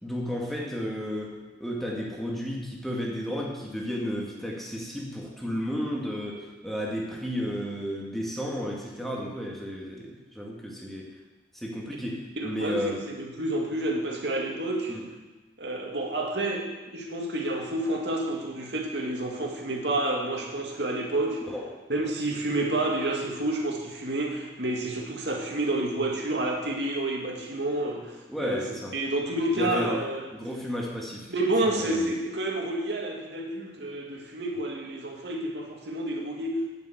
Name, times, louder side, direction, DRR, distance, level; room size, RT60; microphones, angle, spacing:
voice 1, 0.0-11.1 11.5-13.0 14.9-15.1 21.5-21.7 22.0-22.1 28.3-29.0 29.6-30.0 30.3-31.3 31.6-32.1, equal, ahead, -2 dB, 1.9 m, -33 dB
voice 2, 12.4-14.9 15.6-21.4 21.9-28.7 28.9-30.3 31.3-36.6, right 1 dB, 80° right, 0 dB, 2.2 m, -29 dB
9.5 x 7.2 x 8.0 m, 1.2 s
head